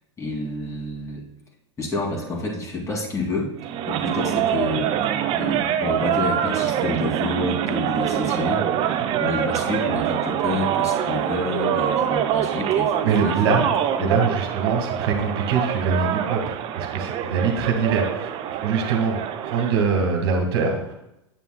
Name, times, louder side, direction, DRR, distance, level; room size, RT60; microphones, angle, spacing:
voice 1, 0.2-1.2 1.8-3.5 3.9-5.0 5.3-13.4 14.0-14.2, left 2 dB, 20° left, -1 dB, 2.4 m, -29 dB
sound 1, 3.6-19.8, right 10 dB, 35° right, 0.6 m, -25 dB
voice 2, 13.0-13.6 14.0-18.3 18.6-19.2 19.4-20.8, right 5 dB, 60° right, 2 dB, 1.5 m, -23 dB
9.2 x 8.2 x 2.2 m, 0.85 s
figure-of-eight pair, 90°, 15 cm